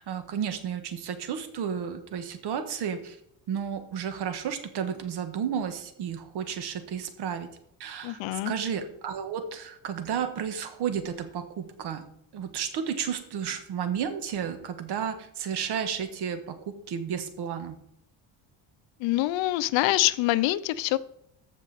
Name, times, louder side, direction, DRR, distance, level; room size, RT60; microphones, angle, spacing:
voice 1, 0.1-3.2 3.5-7.5 7.8-12.1 12.3-16.6 16.9-17.8, right 8 dB, 60° right, 8 dB, 1.5 m, -32 dB
voice 2, 8.0-8.5 19.0-21.0, left 16 dB, 75° left, 17 dB, 0.6 m, -25 dB
14.5 x 5.4 x 4.1 m, 0.77 s
cardioid pair, 155°, 45 cm